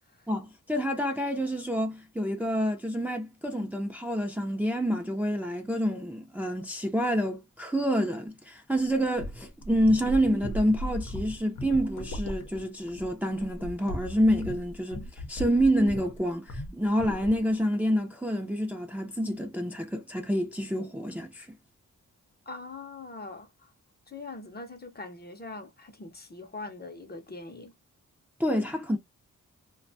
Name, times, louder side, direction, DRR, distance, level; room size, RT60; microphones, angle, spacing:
voice 1, 0.3-21.5 28.4-29.0, equal, 5° right, 0.5 m, -28 dB
sound 1, 8.7-16.2 16.5-16.7 17.0-17.5, left 1 dB, 80° left, 0.8 m, -37 dB
voice 2, 22.5-23.7 24.1-27.7, left 3 dB, 30° left, 0.7 m, -42 dB
2.5 x 2.2 x 2.6 m
cardioid pair, 75°, 31 cm